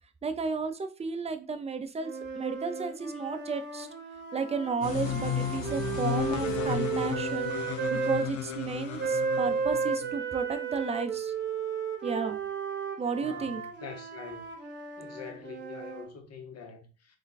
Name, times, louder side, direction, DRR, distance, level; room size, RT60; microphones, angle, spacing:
voice 1, 0.2-3.9 4.3-7.5 7.9-11.3 12.0-12.4 13.0-13.6, right 5 dB, 20° right, 0.4 m, -33 dB
sound 1, 2.0-8.3 9.0-16.1, right 6 dB, 35° right, 1.0 m, -34 dB
sound 2, 4.8-10.2, left 8 dB, 75° left, 0.6 m, -33 dB
voice 2, 13.2-14.4 15.0-17.2, left 6 dB, 55° left, 1.0 m, -45 dB
3.2 x 2.2 x 4.0 m
cardioid pair, 90°, 30 cm